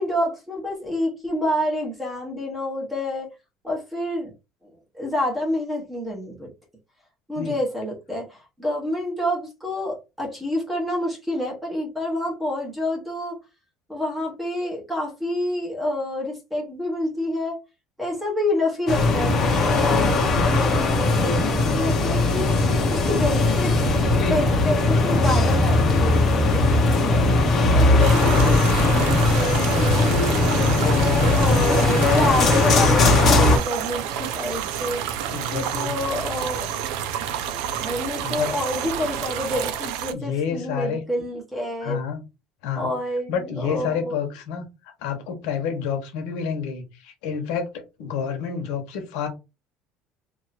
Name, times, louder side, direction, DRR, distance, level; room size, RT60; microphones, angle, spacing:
voice 1, 0.0-3.3 3.6-4.3 4.6-6.5 7.3-13.3 13.9-17.6 18.0-23.8 24.3-30.1 30.5-35.0 35.5-36.7 37.8-42.0 42.7-44.2, left 1 dB, 5° right, 1.3 m, -28 dB
sound 1, 18.9-33.6, left 2 dB, 30° left, 1.0 m, -19 dB
sound 2, 28.0-40.1, right 9 dB, 80° right, 0.5 m, -29 dB
voice 2, 30.8-31.2 35.3-35.9 38.2-38.5 40.1-41.0 41.8-42.2 42.6-42.9 43.3-49.3, left 7 dB, 80° left, 1.2 m, -29 dB
3.0 x 2.7 x 4.2 m
cardioid pair, 175°, 0 cm